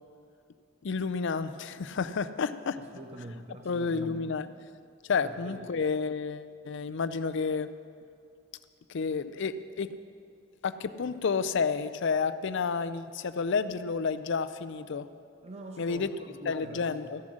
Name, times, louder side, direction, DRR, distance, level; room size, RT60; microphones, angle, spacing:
voice 1, 0.8-2.8 3.7-4.5 5.1-7.7 8.9-9.9 10.6-15.1 15.8-16.1 16.5-17.2, left 5 dB, 65° left, 12 dB, 0.5 m, -30 dB
voice 2, 2.8-4.4 5.2-5.7 15.4-17.1, right 1 dB, 35° right, 3 dB, 0.5 m, -45 dB
14.5 x 7.2 x 6.4 m, 2.3 s
head